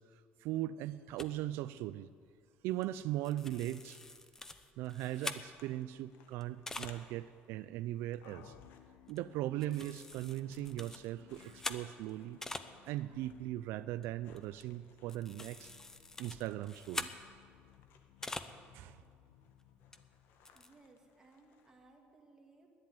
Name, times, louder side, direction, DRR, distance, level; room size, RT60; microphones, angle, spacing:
voice 1, 0.0-2.1 2.6-4.0 4.8-8.6 9.1-12.4 12.8-15.7 16.2-17.1 18.7-19.0, right 14 dB, 75° right, 13 dB, 0.4 m, -39 dB
sound 1, 1.2-1.3 2.8-3.0 3.3-5.8 6.4-7.0 7.5-7.6 7.9-8.2 9.1-9.4 9.6-12.7 13.0-18.6 19.0-19.1 19.9-20.0 20.2-20.7, left 2 dB, 10° left, 0.6 m, -45 dB
Soft sand steps, 3.5-22.1, left 6 dB, 60° left, 1.3 m, -67 dB
sound 2, 8.2-21.1, left 10 dB, 85° left, 0.8 m, -63 dB
voice 2, 20.5-22.7, right 3 dB, 15° right, 0 dB, 2.0 m, -62 dB
10.5 x 10.5 x 9.5 m, 2.1 s
cardioid pair, 150°, 4 cm